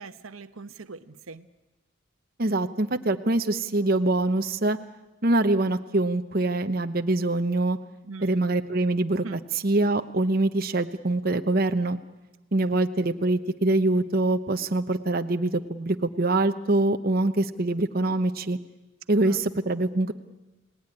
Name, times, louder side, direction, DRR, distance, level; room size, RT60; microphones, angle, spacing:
voice 1, 0.0-1.5 8.0-8.5 9.2-9.4 12.7-12.8 19.2-19.4, right 4 dB, 85° right, 11 dB, 1.0 m, -42 dB
voice 2, 2.4-4.8 5.2-7.8 8.2-12.0 12.5-18.6 19.1-20.1, right 2 dB, 45° right, 7 dB, 0.9 m, -24 dB
30.0 x 18.5 x 9.9 m, 1.1 s
head